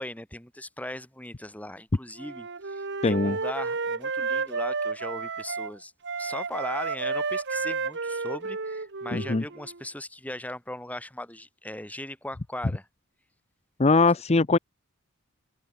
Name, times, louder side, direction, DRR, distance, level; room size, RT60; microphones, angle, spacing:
voice 1, 0.0-5.9 6.2-12.8, left 1 dB, 5° left, 5.4 m, -38 dB
Wind instrument woodwind instrument, 2.2-5.7 6.0-9.8, right 4 dB, 60° right, 1.5 m, -31 dB
voice 2, 3.0-3.4 9.1-9.4 13.8-14.6, left 3 dB, 30° left, 0.7 m, -21 dB
head